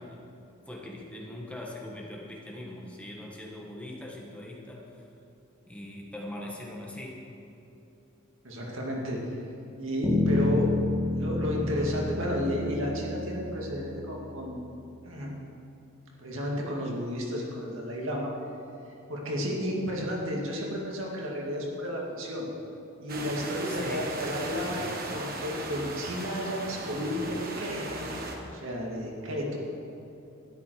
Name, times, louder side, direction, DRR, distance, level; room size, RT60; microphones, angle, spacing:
voice 1, 0.0-5.0 5.7-7.3 23.6-24.1 24.4-24.7, left 1 dB, 5° left, -2 dB, 1.5 m, -41 dB
voice 2, 8.4-9.2 9.8-10.8 11.2-14.6 15.0-15.3 16.2-18.3 19.1-22.5 23.0-24.9 25.1-28.1 28.5-29.6, equal, 75° right, -2 dB, 2.3 m, -32 dB
Bass guitar, 10.0-14.5, left 2 dB, 15° right, 1.6 m, -29 dB
sound 1, 23.1-28.4, right 2 dB, 50° right, 1.4 m, -37 dB
12.5 x 10.5 x 4.9 m, 2.9 s
head